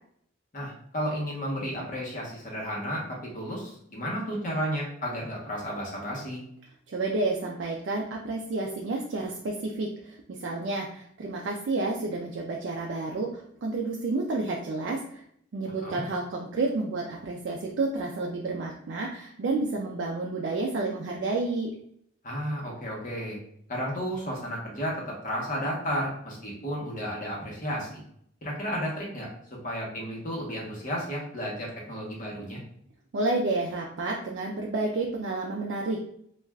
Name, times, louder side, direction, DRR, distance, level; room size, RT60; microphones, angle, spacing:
voice 1, 0.5-6.4 15.8-16.0 22.2-23.4 23.7-28.0 28.4-32.6, equal, 40° left, -3 dB, 0.9 m, -33 dB
voice 2, 6.9-15.2 15.5-21.7 33.1-36.0, right 3 dB, 65° right, -1 dB, 0.4 m, -30 dB
3.3 x 2.4 x 2.2 m, 0.68 s
head